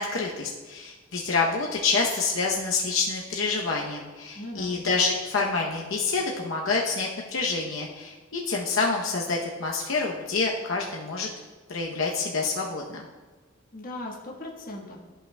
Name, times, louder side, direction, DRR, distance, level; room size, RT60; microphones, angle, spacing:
voice 1, 0.0-11.3 11.7-13.0, left 4 dB, 75° left, -2 dB, 0.8 m, -27 dB
voice 2, 4.3-4.7 13.7-15.0, left 1 dB, 45° left, -2 dB, 1.3 m, -38 dB
13.5 x 5.6 x 2.2 m, 1.3 s
head